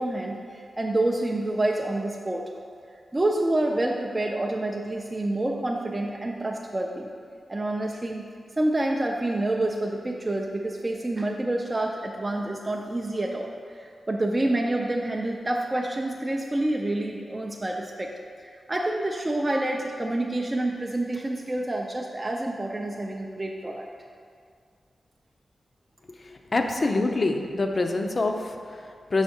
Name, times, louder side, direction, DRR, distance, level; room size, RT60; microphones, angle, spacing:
voice 1, 0.0-2.4 3.1-7.1 7.5-8.3 8.6-18.1 18.4-23.9, right 1 dB, 25° right, 0 dB, 0.4 m, -28 dB
voice 2, 26.2-29.2, left 2 dB, 45° left, 4 dB, 0.5 m, -26 dB
6.1 x 4.8 x 4.3 m, 2.2 s
cardioid pair, 75°, 0 cm